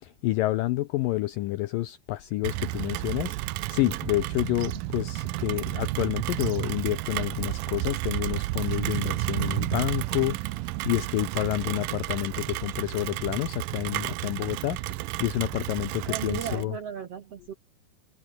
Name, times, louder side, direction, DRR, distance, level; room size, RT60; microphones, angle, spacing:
voice 1, 0.0-16.8, left 17 dB, 85° left, 2.0 m, -29 dB
Rain, 2.4-16.6, right 19 dB, 90° right, 1.9 m, -31 dB
voice 2, 16.0-17.5, right 8 dB, 70° right, 1.5 m, -36 dB
omnidirectional pair, 4.8 m